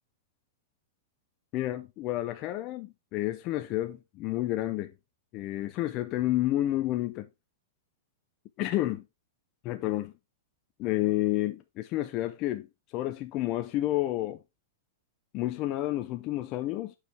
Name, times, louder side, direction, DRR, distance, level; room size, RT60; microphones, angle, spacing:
voice 1, 1.5-4.9 5.3-7.3 8.6-9.0 9.6-10.1 10.8-12.7 12.9-14.4 15.3-17.0, left 15 dB, 35° left, 0.5 m, -30 dB
8.1 x 4.8 x 3.4 m
supercardioid pair, 155°, 0 cm